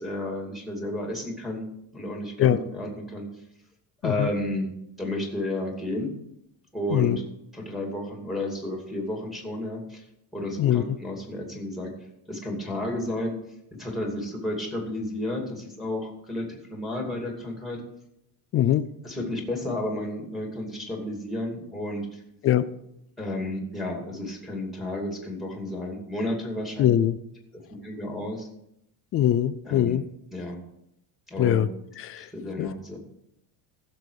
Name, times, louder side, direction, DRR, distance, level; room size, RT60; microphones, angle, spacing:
voice 1, 0.0-1.6 1.9-3.3 4.0-4.7 5.0-6.1 6.7-7.2 7.5-10.0 10.3-11.9 12.3-13.4 13.8-17.8 19.0-22.2 23.2-26.9 27.7-28.5 29.7-30.0 30.3-30.6 31.3-31.6 32.2-33.0, left 1 dB, ahead, 0 dB, 2.5 m, -32 dB
voice 2, 18.5-18.8 22.4-22.7 26.8-27.2 29.1-30.0 31.4-31.7 32.0-32.2 32.6-32.7, left 11 dB, 35° left, 14 dB, 0.4 m, -22 dB
15.5 x 6.9 x 4.9 m, 0.79 s
cardioid pair, 165°, 42 cm